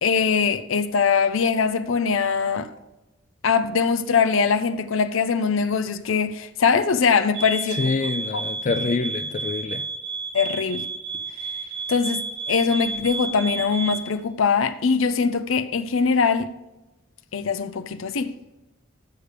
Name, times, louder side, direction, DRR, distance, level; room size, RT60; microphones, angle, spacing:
voice 1, 0.0-2.7 3.4-8.0 10.3-10.9 11.9-16.5 17.3-18.3, left 5 dB, 85° left, 0.6 m, -22 dB
sound 1, 7.3-14.1, right 4 dB, 60° right, 1.1 m, -31 dB
voice 2, 7.8-9.9, left 4 dB, 40° left, 0.4 m, -26 dB
14.5 x 6.7 x 3.4 m
head